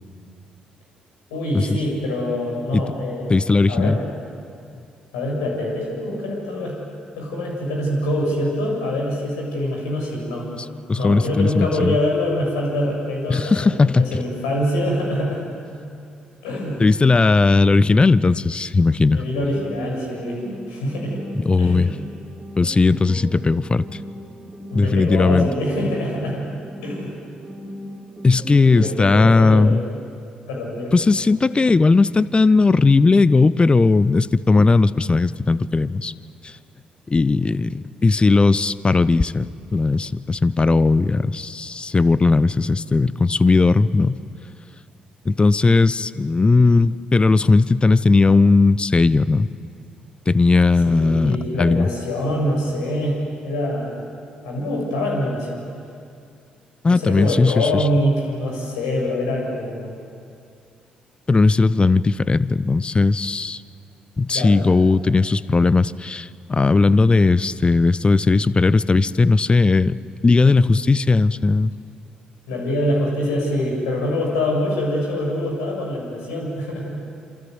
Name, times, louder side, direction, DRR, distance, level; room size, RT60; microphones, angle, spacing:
voice 1, 1.3-3.4 3.7-4.0 5.1-6.8 7.2-10.5 11.0-15.5 16.4-16.8 19.1-21.2 21.6-21.8 24.7-26.4 26.8-27.1 28.6-29.8 30.5-30.9 50.8-53.2 53.4-54.0 54.4-55.6 56.9-59.9 64.3-64.6 72.5-76.9, left 1 dB, 75° left, -1 dB, 7.2 m, -24 dB
voice 2, 3.3-4.0 10.9-12.0 13.3-14.2 16.8-19.2 21.4-21.9 22.6-23.8 24.7-25.5 28.2-29.8 30.9-36.1 36.4-36.5 37.1-44.2 45.2-49.5 50.3-51.9 56.8-57.8 61.3-63.6 64.2-70.0 70.2-71.7, left 3 dB, 25° left, 18 dB, 0.8 m, -17 dB
sound 1, 19.4-29.4, right 1 dB, 15° right, 4.0 m, -36 dB
27.5 x 26.5 x 8.0 m, 2.3 s
figure-of-eight pair, 45°, 4 cm